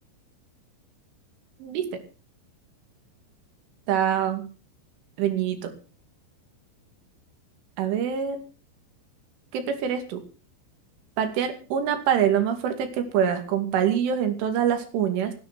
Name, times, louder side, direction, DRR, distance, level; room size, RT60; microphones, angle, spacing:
voice 1, 3.9-4.4 5.2-5.7 7.8-8.4 9.5-10.2 11.2-15.3, right 9 dB, 85° right, 7 dB, 5.0 m, -25 dB
19.0 x 9.6 x 6.2 m, 0.37 s
omnidirectional pair, 5.5 m